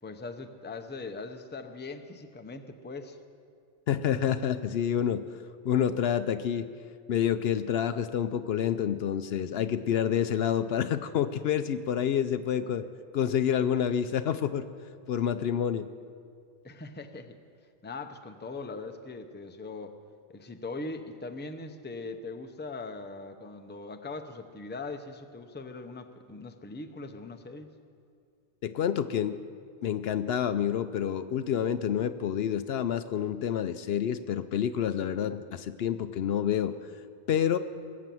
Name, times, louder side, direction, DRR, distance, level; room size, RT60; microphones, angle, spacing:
voice 1, 0.0-3.2 16.6-17.4 17.8-19.9 20.3-27.7, left 3 dB, 10° left, 6 dB, 0.6 m, -40 dB
voice 2, 3.9-5.2 5.6-6.7 7.1-12.9 13.1-14.6 15.1-15.9 28.6-29.4 29.8-36.7 37.3-37.6, left 9 dB, 70° left, 11 dB, 0.7 m, -28 dB
20.5 x 8.4 x 7.6 m, 2.4 s
omnidirectional pair, 1.2 m